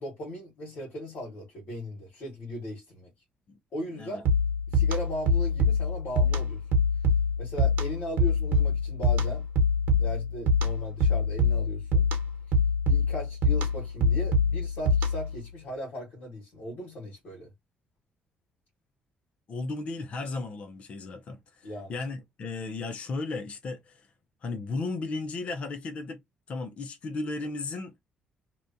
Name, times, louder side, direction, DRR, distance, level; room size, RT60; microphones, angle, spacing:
voice 1, 0.0-3.1 3.7-4.3 4.7-6.6 7.4-9.4 10.0-12.1 12.9-17.5 21.6-21.9, equal, 65° left, 1.4 m, -38 dB
sound 1, 4.2-15.4, left 2 dB, 75° right, 1.0 m, -25 dB
voice 2, 19.5-24.1 24.4-26.2 26.5-28.0, left 3 dB, 45° left, 0.5 m, -35 dB
2.8 x 2.2 x 2.5 m
cardioid pair, 130°, 3 cm